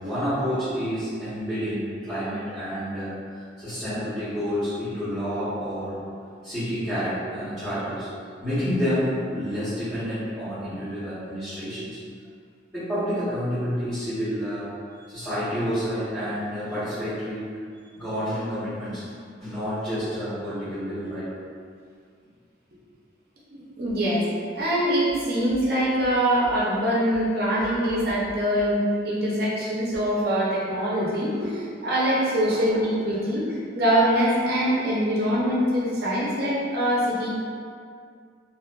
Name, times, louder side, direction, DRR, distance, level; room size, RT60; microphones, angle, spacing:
voice 1, 0.0-6.0 6.4-8.1 8.4-12.0 12.7-14.7 15.1-17.5 17.9-21.3 32.5-32.7, equal, ahead, -21 dB, 1.0 m, -29 dB
voice 2, 23.5-24.3 24.5-33.5 33.7-37.3, equal, 50° right, -7 dB, 0.6 m, -23 dB
2.5 x 2.4 x 2.2 m, 2.2 s
head